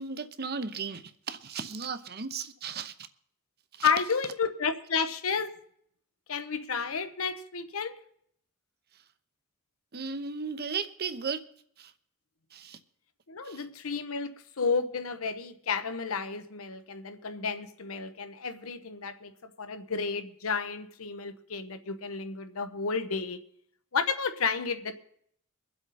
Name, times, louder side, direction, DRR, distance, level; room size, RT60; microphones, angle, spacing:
voice 1, 0.0-2.9 3.7-3.9 9.9-11.4 11.8-11.9 12.5-12.8 13.4-13.6, right 5 dB, 50° right, 0.9 m, -35 dB
voice 2, 3.8-5.5 6.3-8.0 13.3-23.4 23.9-24.9, left 5 dB, 80° left, 1.0 m, -31 dB
23.5 x 7.9 x 4.2 m
head